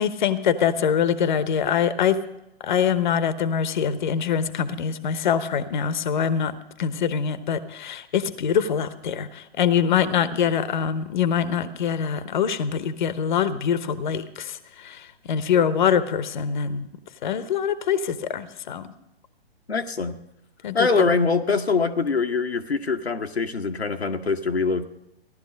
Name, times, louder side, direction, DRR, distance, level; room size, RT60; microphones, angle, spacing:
voice 1, 0.0-2.2 2.6-16.9 17.2-18.9 20.6-21.1, left 8 dB, 50° left, 14 dB, 0.9 m, -24 dB
voice 2, 19.7-20.2 20.7-24.8, left 4 dB, 90° left, 5 dB, 1.0 m, -23 dB
15.5 x 11.5 x 5.2 m, 0.88 s
figure-of-eight pair, 130°, 31 cm